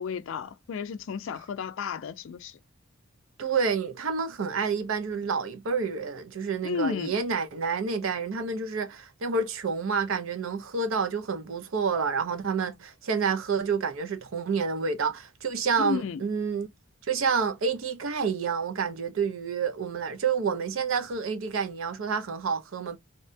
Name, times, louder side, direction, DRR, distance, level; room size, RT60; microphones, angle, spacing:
voice 1, 0.0-2.6 6.6-7.2 15.8-16.2, left 6 dB, 60° left, 0.3 m, -32 dB
voice 2, 3.4-16.7 17.1-23.0, right 5 dB, 65° right, 0.5 m, -29 dB
2.7 x 2.1 x 2.5 m
head